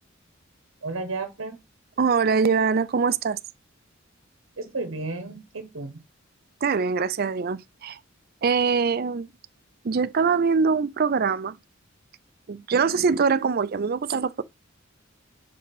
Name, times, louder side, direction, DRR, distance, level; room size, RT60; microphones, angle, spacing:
voice 1, 0.8-1.6 4.6-6.0, right 3 dB, 75° right, 1.0 m, -33 dB
voice 2, 2.0-3.4 6.6-8.0 8.4-9.3 9.8-11.6 12.5-14.4, right 5 dB, 50° right, 0.5 m, -23 dB
5.3 x 3.7 x 5.8 m
head